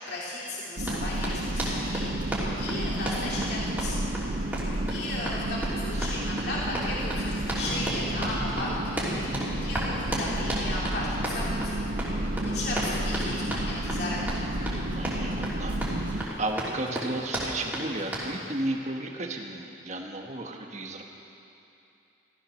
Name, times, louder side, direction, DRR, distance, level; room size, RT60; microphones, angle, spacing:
voice 1, 0.1-4.6 4.9-14.4, left 2 dB, 60° left, -5 dB, 2.5 m, -36 dB
Run, 0.8-18.3, right 1 dB, 10° right, 3.1 m, -34 dB
sound 1, 0.8-16.2, right 1 dB, 70° right, 1.1 m, -31 dB
Acoustic guitar / Strum, 7.6-13.6, right 1 dB, 20° left, 2.9 m, -44 dB
voice 2, 14.9-15.8 16.1-21.0, right 2 dB, 40° right, 2 dB, 1.4 m, -34 dB
15.5 x 13.5 x 6.5 m, 2.8 s
head